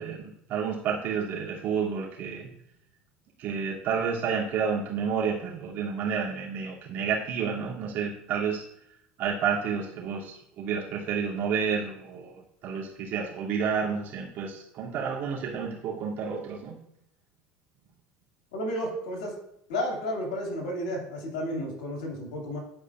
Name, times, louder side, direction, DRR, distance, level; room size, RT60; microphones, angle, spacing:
voice 1, 0.0-2.5 3.4-8.6 9.2-16.7, right 6 dB, 55° right, -5 dB, 2.7 m, -30 dB
voice 2, 18.5-19.3 19.7-22.6, equal, 80° left, 0 dB, 2.4 m, -32 dB
11.5 x 5.0 x 2.5 m, 0.74 s
hypercardioid pair, 85°, 4 cm